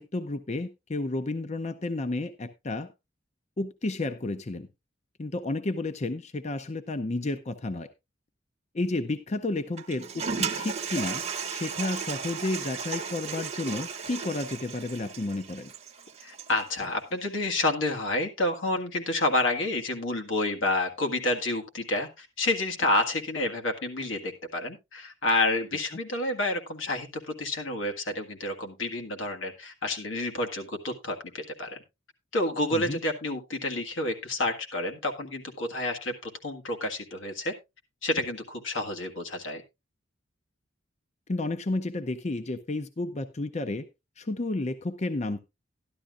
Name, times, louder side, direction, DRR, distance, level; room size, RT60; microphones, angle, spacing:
voice 1, 0.0-2.9 3.6-4.7 5.2-7.9 8.7-11.2 11.5-15.7 32.7-33.0 41.3-43.8 44.2-45.4, left 2 dB, 35° left, 10 dB, 0.6 m, -31 dB
Toilet flush, 9.8-16.7, right 6 dB, 35° right, 0.9 m, -35 dB
voice 2, 16.2-31.8 32.3-37.5 38.0-39.6, left 2 dB, 85° left, 3 dB, 1.8 m, -29 dB
13.0 x 11.5 x 2.4 m, 0.24 s
head